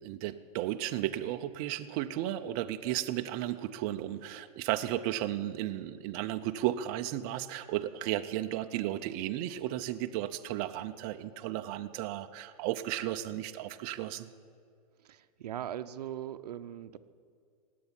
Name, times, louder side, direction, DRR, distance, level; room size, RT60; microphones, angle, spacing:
voice 1, 0.0-14.3, right 13 dB, 35° right, 7 dB, 0.6 m, -34 dB
voice 2, 15.0-17.0, right 11 dB, 80° right, 11 dB, 0.8 m, -40 dB
17.0 x 8.6 x 9.8 m, 2.3 s
supercardioid pair, 150°, 20 cm